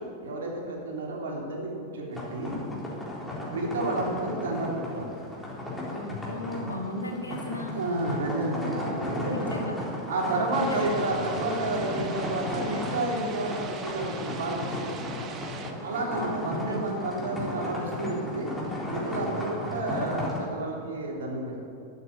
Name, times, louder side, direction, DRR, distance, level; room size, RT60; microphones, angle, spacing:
voice 1, 0.0-2.6 3.5-5.1 7.7-9.5 10.1-15.2 15.8-18.5 18.9-21.6, right 2 dB, 60° right, -1 dB, 3.3 m, -31 dB
sound 1, 2.1-20.4, left 1 dB, 5° left, 3.8 m, -35 dB
voice 2, 5.9-7.8 9.3-9.8 10.6-10.8 16.1-16.8, left 2 dB, 80° left, 2 dB, 2.0 m, -35 dB
sound 2, 10.5-15.7, right 5 dB, 30° right, 1.3 m, -42 dB
12.0 x 8.7 x 8.8 m, 2.4 s
figure-of-eight pair, 90°, 0 cm